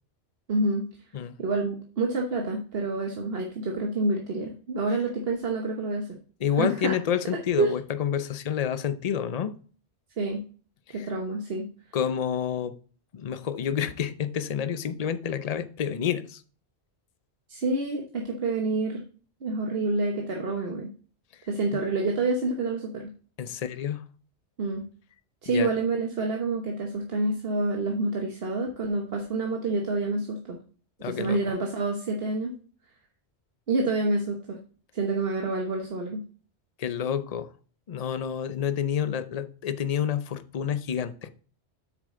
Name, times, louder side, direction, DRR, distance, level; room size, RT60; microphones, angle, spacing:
voice 1, 0.5-0.8 1.4-6.2 6.6-6.9 7.6-7.7 10.2-10.4 10.9-11.7 17.5-19.0 19.4-20.9 21.5-23.1 24.6-24.8 25.4-30.6 31.0-32.5 33.7-34.6 34.9-36.2, right 2 dB, 60° right, 1.3 m, -28 dB
voice 2, 6.4-9.6 10.9-11.1 11.9-12.7 13.1-16.4 23.4-24.0 25.5-25.7 31.0-31.4 36.8-37.5 37.9-41.3, left 8 dB, 40° left, 0.6 m, -29 dB
8.4 x 6.6 x 3.7 m
omnidirectional pair, 1.2 m